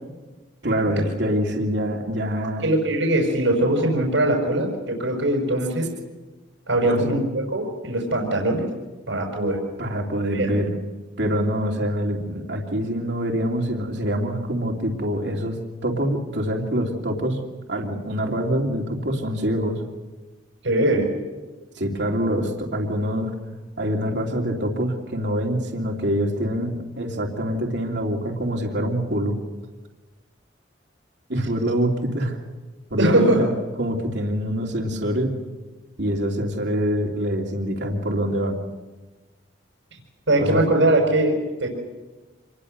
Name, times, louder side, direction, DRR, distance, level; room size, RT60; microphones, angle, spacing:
voice 1, 0.6-2.7 6.8-7.1 9.8-10.7 11.2-15.6 15.8-17.4 17.7-19.8 21.7-23.3 23.8-29.4 31.3-32.4 32.9-33.5 33.8-35.3 36.0-38.6 40.4-40.7, equal, 65° right, 1 dB, 3.0 m, -25 dB
voice 2, 2.6-5.9 6.7-8.7 9.1-9.6 10.3-10.5 20.6-21.1 33.0-33.4 40.3-41.7, right 1 dB, 90° right, -1 dB, 5.6 m, -21 dB
27.0 x 21.5 x 6.8 m, 1.2 s
head